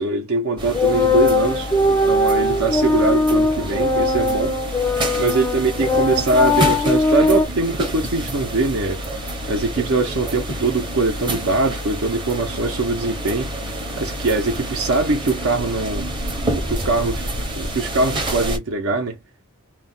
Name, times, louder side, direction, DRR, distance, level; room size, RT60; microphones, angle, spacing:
voice 1, 0.0-4.6 5.2-9.0 9.5-13.5 14.0-16.1 16.5-17.2 17.5-19.2, right 3 dB, 75° right, 0.7 m, -22 dB
sound 1, 0.6-18.6, right 1 dB, 20° right, 0.7 m, -28 dB
sound 2, 0.7-7.5, left 2 dB, 15° left, 0.4 m, -20 dB
2.4 x 2.1 x 3.8 m
head